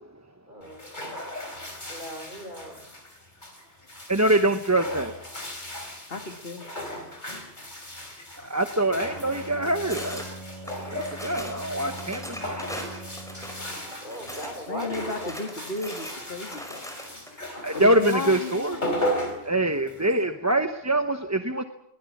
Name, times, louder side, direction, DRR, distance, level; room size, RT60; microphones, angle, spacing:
voice 1, 0.5-0.8 1.9-2.8 14.0-14.9 17.5-17.6, equal, 50° right, 5 dB, 4.8 m, -38 dB
sound 1, 0.6-20.2, equal, 50° left, 4.2 m, -36 dB
voice 2, 4.1-5.1 8.4-10.2 10.8-12.6 17.6-18.8 19.4-21.6, right 1 dB, 15° right, 7 dB, 0.9 m, -24 dB
voice 3, 6.1-6.7 14.7-16.9 17.7-18.8, left 3 dB, 65° left, 6 dB, 2.2 m, -33 dB
Bowed string instrument, 8.9-14.0, right 1 dB, 30° left, 5.7 m, -43 dB
sound 2, 9.9-10.3 10.7-11.6 12.0-14.5 14.8-17.3, equal, 5° left, 5.4 m, -39 dB
22.5 x 20.5 x 7.3 m, 0.76 s
omnidirectional pair, 1.0 m